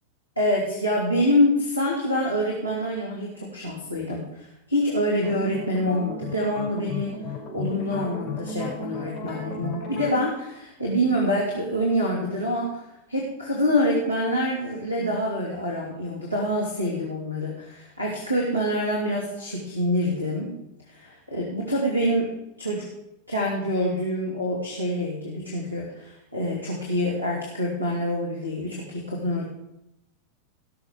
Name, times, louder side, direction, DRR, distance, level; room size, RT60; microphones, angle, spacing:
voice 1, 0.4-7.1 7.5-12.8 13.1-20.5 20.9-22.8 23.3-29.5, equal, 85° left, -4 dB, 2.5 m, -26 dB
sound 1, 5.2-10.3, left 3 dB, 20° left, 5.6 m, -35 dB
18.0 x 6.5 x 5.0 m, 0.89 s
figure-of-eight pair, 90°, 0 cm